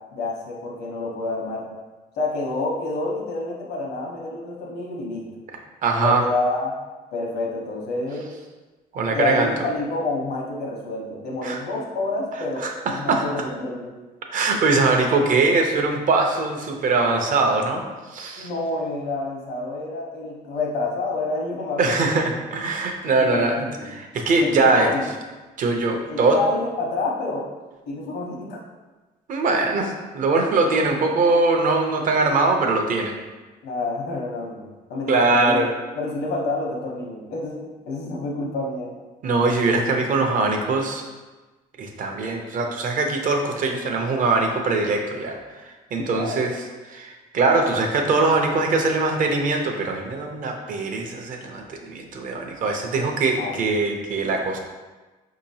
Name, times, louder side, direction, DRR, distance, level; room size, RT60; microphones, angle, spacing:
voice 1, 0.1-1.7 2.1-5.2 5.9-6.8 7.1-8.3 9.1-13.9 18.4-22.1 23.2-24.0 24.3-25.0 26.1-27.5 27.9-28.6 33.6-34.6 34.9-35.7 36.0-38.9 46.0-46.5 53.4-53.9, left 2 dB, 75° left, -2 dB, 1.0 m, -28 dB
voice 2, 5.8-6.2 8.9-9.5 11.4-11.6 12.6-13.2 14.3-17.8 18.1-18.5 21.8-24.9 25.6-26.4 29.3-33.1 35.1-35.7 39.2-41.0 41.8-45.4 45.9-46.5 46.9-54.6, right 3 dB, 50° right, 3 dB, 0.6 m, -22 dB
4.5 x 2.9 x 2.7 m, 1.2 s
cardioid pair, 110°, 17 cm